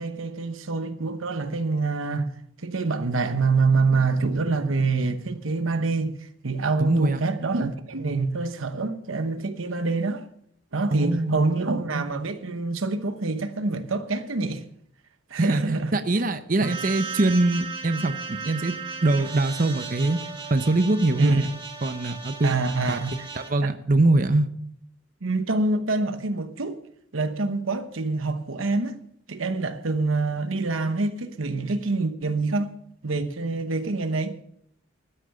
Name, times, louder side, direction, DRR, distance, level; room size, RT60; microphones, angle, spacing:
voice 1, 0.0-2.3 2.6-10.2 10.7-14.6 15.3-16.0 16.6-16.8 21.2-21.5 22.4-23.3 25.2-26.8 27.1-29.0 29.3-32.7 33.0-34.3, right 3 dB, 80° right, 1.0 m, -26 dB
voice 2, 6.8-7.2 10.9-11.4 15.4-20.2 20.5-21.4 21.8-22.5 22.9-23.0 23.4-24.5, right 2 dB, 40° right, 0.8 m, -23 dB
sound 1, 16.6-23.5, right 5 dB, 25° right, 1.7 m, -36 dB
12.5 x 10.0 x 6.8 m
head